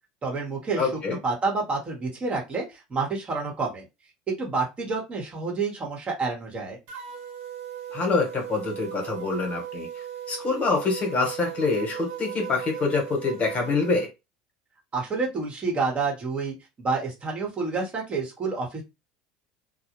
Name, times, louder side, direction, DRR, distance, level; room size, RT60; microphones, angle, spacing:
voice 1, 0.2-0.9 1.2-3.8 4.3-6.8 14.9-18.8, right 4 dB, 30° right, 1.1 m, -29 dB
voice 2, 0.8-1.2 7.9-9.9 10.3-14.1, left 4 dB, 35° left, 1.1 m, -25 dB
sound 1, 6.9-14.1, right 9 dB, 65° right, 0.7 m, -37 dB
2.2 x 2.1 x 2.9 m
hypercardioid pair, 80°, 4 cm